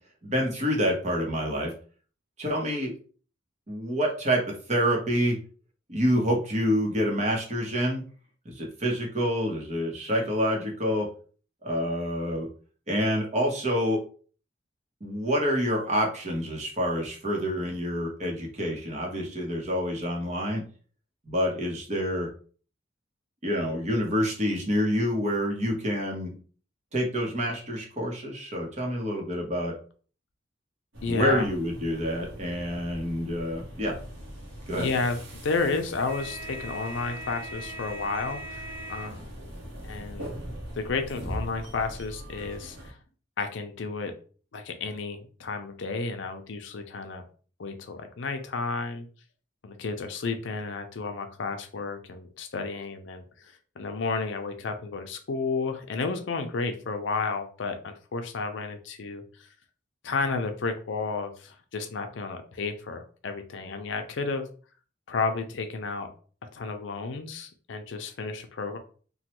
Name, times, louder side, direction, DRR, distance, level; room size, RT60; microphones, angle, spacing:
voice 1, 0.2-1.7 2.4-2.9 3.7-4.4 4.7-5.4 5.9-8.0 8.4-11.1 11.6-12.5 12.9-14.0 15.0-20.6 21.3-22.3 23.4-26.4 26.9-29.7 31.1-33.9 34.7-34.9, equal, 35° right, 0 dB, 0.8 m, -27 dB
sound 1, 30.9-42.9, equal, 80° right, 1.0 m, -40 dB
voice 2, 31.0-31.5 34.8-39.4 39.8-40.3 40.7-43.0 43.4-44.1 44.5-47.2 47.6-49.1 49.6-59.2 60.0-64.5 65.1-66.1 66.5-68.8, left 4 dB, 70° left, 6 dB, 0.5 m, -32 dB
3.1 x 2.2 x 2.9 m, 0.40 s
head